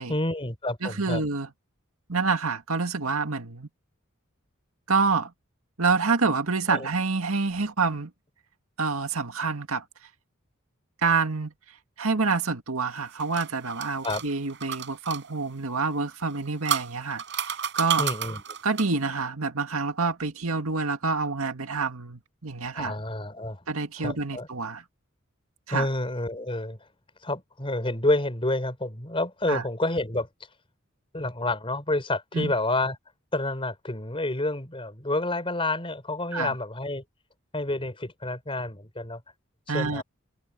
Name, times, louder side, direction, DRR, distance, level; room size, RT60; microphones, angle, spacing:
voice 1, 0.1-1.2 6.7-6.9 14.0-14.2 18.0-18.4 22.7-23.6 24.0-24.5 25.7-26.8 27.2-30.3 31.1-33.0 33.3-37.0 37.5-39.2 39.7-40.0, left 2 dB, 25° left, 4.2 m, -29 dB
voice 2, 0.8-1.5 2.1-3.7 4.9-5.3 5.8-8.1 8.8-9.8 11.0-11.5 12.0-18.0 18.6-22.9 23.7-24.8 25.7-25.9 29.5-29.6 32.3-32.5 36.3-36.5 39.7-40.0, right 4 dB, 85° right, 2.0 m, -27 dB
sound 1, 12.9-15.2 16.2-19.0, right 7 dB, 60° right, 5.8 m, -32 dB
head